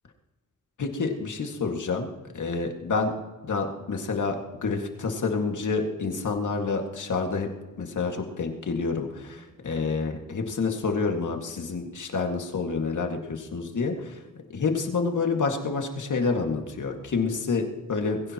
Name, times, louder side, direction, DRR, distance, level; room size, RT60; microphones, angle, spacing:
voice 1, 0.8-2.1 2.3-3.1 3.4-7.5 7.8-14.2 14.5-18.3, left 4 dB, 70° left, 3 dB, 2.1 m, -28 dB
21.0 x 16.5 x 3.0 m, 1.2 s
wide cardioid pair, 105°, 32 cm